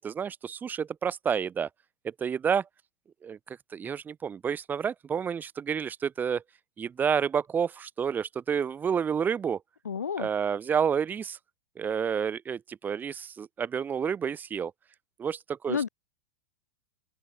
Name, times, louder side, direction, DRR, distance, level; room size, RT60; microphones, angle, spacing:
voice 1, 0.0-1.7 2.0-2.7 3.2-6.4 6.8-9.6 10.2-11.4 11.8-14.7 15.2-15.9, right 7 dB, 20° right, 2.0 m, -29 dB
voice 2, 9.8-10.3 15.7-15.9, left 7 dB, 85° left, 2.9 m, -30 dB
open air
hypercardioid pair, 110°, 9 cm